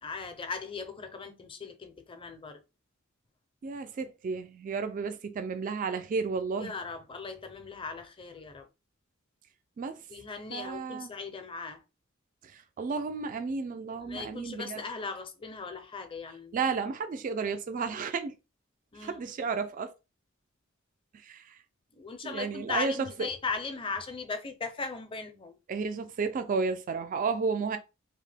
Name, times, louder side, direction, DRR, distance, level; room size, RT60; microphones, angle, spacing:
voice 1, 0.0-2.6 6.6-8.7 10.1-11.8 14.0-16.6 18.9-19.3 21.9-25.6, left 4 dB, 25° left, 0.5 m, -38 dB
voice 2, 3.6-6.7 9.8-10.0 10.5-11.1 12.4-14.8 16.5-18.4 19.0-19.9 21.2-21.6 22.2-23.3 25.7-27.8, right 5 dB, 40° right, 0.3 m, -32 dB
2.8 x 2.1 x 3.3 m
head